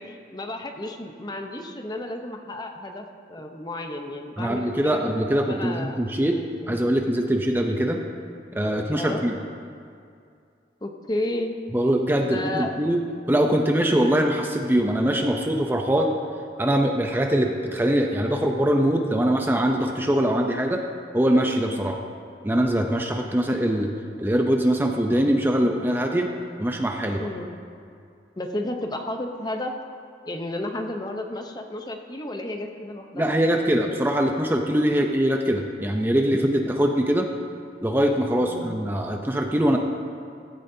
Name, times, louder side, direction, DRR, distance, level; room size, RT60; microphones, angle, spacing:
voice 1, 0.0-5.0 5.3-6.0 6.4-6.8 8.9-9.2 10.8-11.5 12.2-12.7 27.2-27.6 28.4-29.7 30.3-33.3 38.4-38.7, left 1 dB, 25° left, 4 dB, 0.8 m, -32 dB
voice 2, 4.4-6.4 6.7-8.0 8.5-9.3 11.7-13.0 13.3-16.1 16.6-20.8 21.1-22.0 22.4-23.9 24.2-26.3 26.6-27.3 33.1-37.3 37.8-39.8, right 1 dB, 10° right, 2 dB, 0.6 m, -22 dB
15.5 x 14.0 x 2.7 m, 2.4 s
head